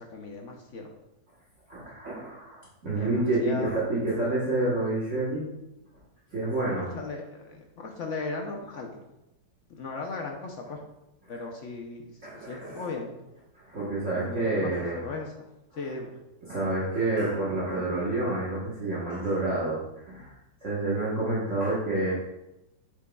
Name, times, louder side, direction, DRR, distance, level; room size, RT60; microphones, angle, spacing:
voice 1, 0.1-0.9 3.0-3.8 6.7-9.0 9.7-10.8 11.3-12.1 12.4-13.1 14.3-15.5 15.8-16.1, left 3 dB, 60° left, 1 dB, 0.8 m, -37 dB
voice 2, 1.7-5.5 6.3-6.9 12.2-12.9 13.6-15.0 16.5-19.8 20.0-20.3 20.6-22.1, right 2 dB, 45° right, -7 dB, 1.4 m, -28 dB
8.3 x 5.0 x 2.3 m, 0.92 s
omnidirectional pair, 2.0 m